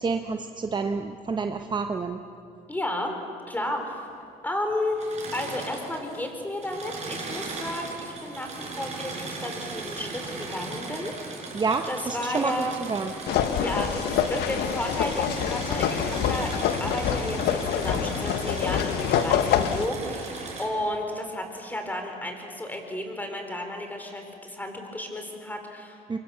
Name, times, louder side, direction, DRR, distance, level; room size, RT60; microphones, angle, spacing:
voice 1, 0.0-2.2 11.5-12.5 12.9-13.1 26.1-26.2, right 4 dB, 25° right, 5 dB, 1.0 m, -28 dB
voice 2, 2.7-3.1 3.5-4.1 4.4-5.0 5.3-11.5 11.8-12.8 13.6-14.0 14.3-26.2, left 1 dB, 10° left, 4 dB, 4.0 m, -33 dB
Engine / Mechanisms, 4.9-6.2 6.5-20.7, right 3 dB, 40° right, 5.5 m, -37 dB
sound 1, 13.3-19.9, left 9 dB, 75° left, 1.1 m, -26 dB
24.5 x 23.5 x 7.0 m, 2.5 s
cardioid pair, 110°, 17 cm